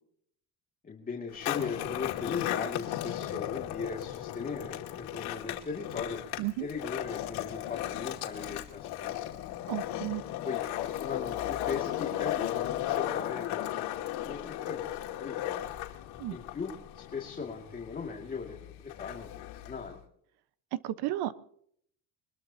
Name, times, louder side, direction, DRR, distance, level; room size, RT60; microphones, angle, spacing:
voice 1, 0.8-6.2 6.6-9.2 9.8-9.9 10.4-14.0 14.3-15.6 16.3-20.0, left 5 dB, 20° left, 0 dB, 2.3 m, -39 dB
Skateboard, 1.3-19.9, left 13 dB, 80° left, 2.4 m, -36 dB
voice 2, 9.7-10.2 16.2-16.4 20.7-21.3, right 15 dB, 75° right, 13 dB, 1.2 m, -33 dB
23.5 x 21.0 x 2.8 m, 0.66 s
cardioid pair, 155°, 39 cm